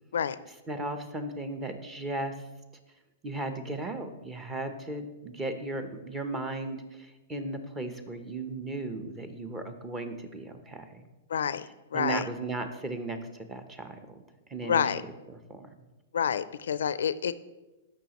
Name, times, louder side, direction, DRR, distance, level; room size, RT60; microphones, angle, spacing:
voice 1, 0.7-2.3 3.2-11.0 11.9-13.2 13.5-14.2 14.5-14.8 15.5-15.7, right 2 dB, 15° right, 8 dB, 0.8 m, -36 dB
voice 2, 11.3-12.3 14.6-15.0 16.1-17.3, left 8 dB, 90° left, 16 dB, 0.4 m, -28 dB
13.5 x 5.6 x 3.0 m, 1.1 s
hypercardioid pair, 150°, 0 cm